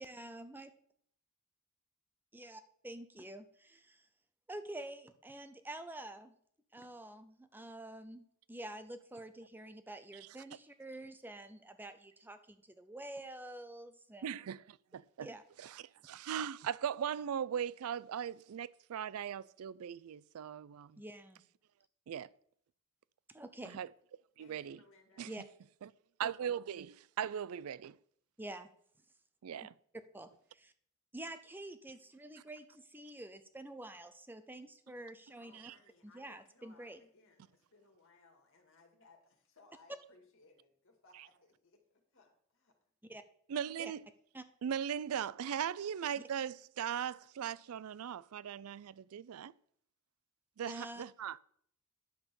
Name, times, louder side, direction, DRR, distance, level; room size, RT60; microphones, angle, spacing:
voice 1, 0.0-0.7 2.3-4.1 4.5-6.3 6.7-8.2 8.5-14.3 15.2-15.4 21.0-21.4 23.3-23.8 25.3-25.4 28.4-28.7 30.1-30.7 31.1-35.7 36.1-37.0 43.1-43.2 43.8-43.9 44.3-44.4 50.7-51.0, right 1 dB, 10° right, 0.5 m, -48 dB
voice 2, 14.2-15.3 15.6-21.0 22.1-22.3 23.7-23.9 24.4-24.8 25.2-25.3 25.8-25.9 26.2-28.0 29.4-29.7 35.6-35.7 43.5-44.0 44.6-49.5 50.6-51.4, right 8 dB, 85° right, 0.4 m, -39 dB
voice 3, 24.4-25.3 35.4-42.8, left 3 dB, 65° left, 2.2 m, -65 dB
10.5 x 5.4 x 6.8 m
head